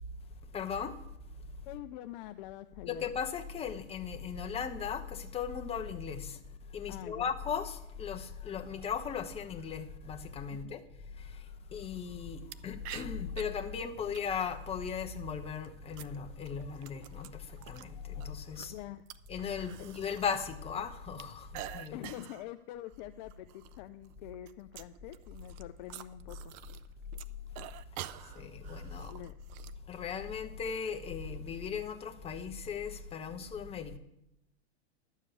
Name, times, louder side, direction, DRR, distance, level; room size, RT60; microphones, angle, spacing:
voice 1, 0.5-1.0 2.9-6.4 6.7-10.8 11.2-11.4 11.7-18.7 19.3-22.0 28.4-29.1 29.9-34.0, left 6 dB, 15° left, 1.0 m, -37 dB
voice 2, 1.7-3.0 6.9-7.3 10.5-10.8 18.6-19.0 21.9-26.5 29.1-29.3, left 14 dB, 45° left, 0.5 m, -45 dB
sound 1, 12.5-12.6 12.8-13.4 14.1-14.6 15.4-17.9 18.2-20.5 20.7-22.5 22.9-23.0 23.3-23.8 24.0-26.9 27.1-29.7, right 13 dB, 40° right, 0.6 m, -47 dB
12.0 x 7.3 x 7.0 m
hypercardioid pair, 130°, 34 cm